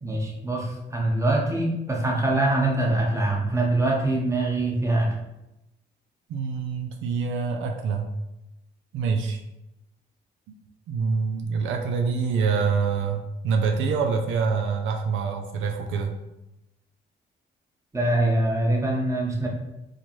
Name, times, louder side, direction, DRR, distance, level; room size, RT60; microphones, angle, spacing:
voice 1, 0.0-5.1 17.9-19.5, right 2 dB, 15° right, -1 dB, 0.9 m, -24 dB
voice 2, 6.3-8.1 8.9-9.4 10.5-10.6 10.9-16.1, right 5 dB, 80° right, 4 dB, 0.5 m, -26 dB
4.5 x 2.3 x 3.0 m, 0.92 s
cardioid pair, 90°, 20 cm